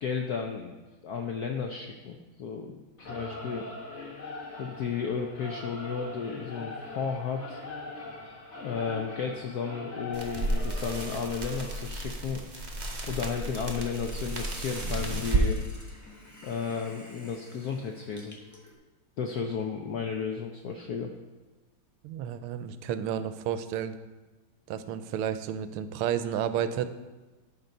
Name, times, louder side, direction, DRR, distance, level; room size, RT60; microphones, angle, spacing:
voice 1, 0.0-0.7 1.0-2.8 3.1-3.7 4.6-7.6 8.6-12.4 13.1-15.6 16.4-18.4 19.2-21.1, left 6 dB, 75° left, 3 dB, 0.8 m, -33 dB
Singing / Musical instrument, 3.0-11.9, left 2 dB, 35° left, 1.6 m, -41 dB
sound 1, 10.1-15.5, right 2 dB, 55° right, 0.5 m, -32 dB
Hiss, 12.9-18.7, left 1 dB, 15° left, 0.6 m, -49 dB
voice 2, 22.0-24.0 24.7-26.9, right 9 dB, 85° right, 12 dB, 1.5 m, -31 dB
11.5 x 4.1 x 5.3 m, 1.2 s
omnidirectional pair, 2.4 m